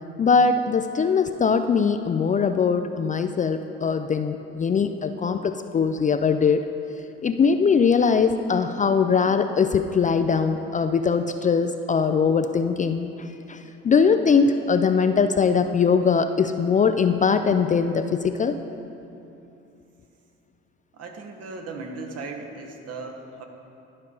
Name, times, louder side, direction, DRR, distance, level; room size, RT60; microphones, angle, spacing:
voice 1, 0.2-6.6 7.2-18.6, left 5 dB, 25° left, 8 dB, 0.4 m, -21 dB
voice 2, 20.9-23.4, right 3 dB, 55° right, 3 dB, 1.3 m, -37 dB
11.5 x 5.2 x 5.4 m, 2.8 s
hypercardioid pair, 60°, 30 cm